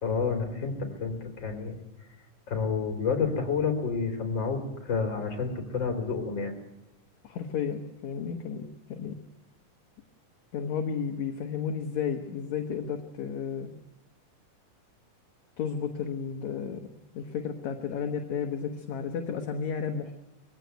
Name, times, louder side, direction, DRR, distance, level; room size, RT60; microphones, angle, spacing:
voice 1, 0.0-1.8 2.5-6.5, left 5 dB, 35° left, 5 dB, 3.9 m, -29 dB
voice 2, 7.2-8.6 8.9-9.2 10.5-13.7 15.6-16.8 17.1-20.2, left 7 dB, 65° left, 4 dB, 2.5 m, -32 dB
22.0 x 15.5 x 9.2 m, 0.95 s
omnidirectional pair, 3.7 m